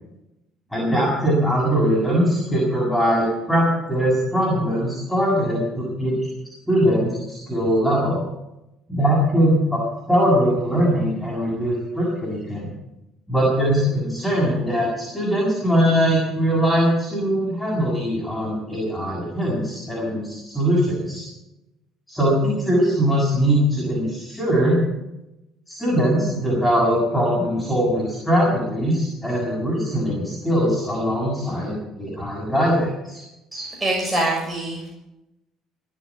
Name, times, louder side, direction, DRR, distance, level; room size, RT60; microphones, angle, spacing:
voice 1, 0.7-6.2 6.7-8.2 8.9-9.8 10.1-12.7 13.3-21.2 22.1-24.8 25.7-33.2, equal, 5° left, -4 dB, 7.2 m, -21 dB
voice 2, 33.5-34.9, right 2 dB, 15° right, -3 dB, 6.6 m, -24 dB
18.5 x 8.1 x 8.4 m, 0.92 s
supercardioid pair, 85°, 0 cm